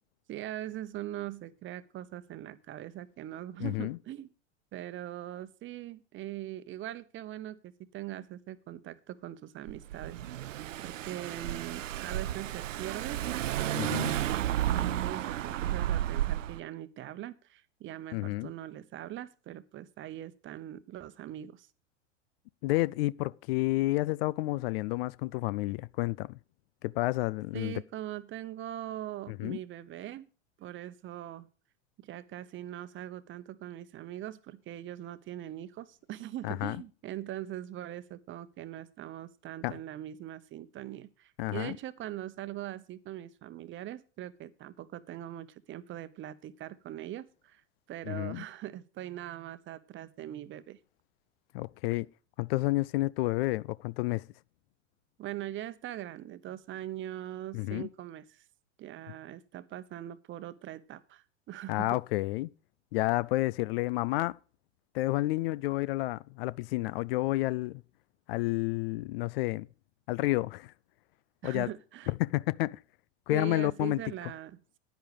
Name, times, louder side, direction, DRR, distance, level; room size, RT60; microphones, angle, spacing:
voice 1, 0.3-4.3 4.7-10.2 10.8-14.0 14.7-21.7 27.5-30.3 30.6-31.5 32.0-47.6 47.9-50.8 55.2-58.4 58.8-62.0 71.4-72.1 73.3-74.8, right 13 dB, 30° right, 1.0 m, -41 dB
voice 2, 3.6-4.0 13.8-14.1 18.1-18.5 22.6-26.4 26.8-27.8 29.3-29.6 36.4-36.8 39.6-39.7 41.4-41.8 48.1-48.4 51.5-52.1 52.4-54.3 57.5-57.9 61.7-62.5 62.9-64.4 64.9-67.8 68.3-69.7 70.1-70.7 71.4-71.7 72.1-72.8 73.3-74.0, left 19 dB, 50° left, 0.5 m, -30 dB
Car / Engine, 9.7-16.6, right 12 dB, 85° right, 0.6 m, -32 dB
10.5 x 10.5 x 5.0 m
hypercardioid pair, 95°, 37 cm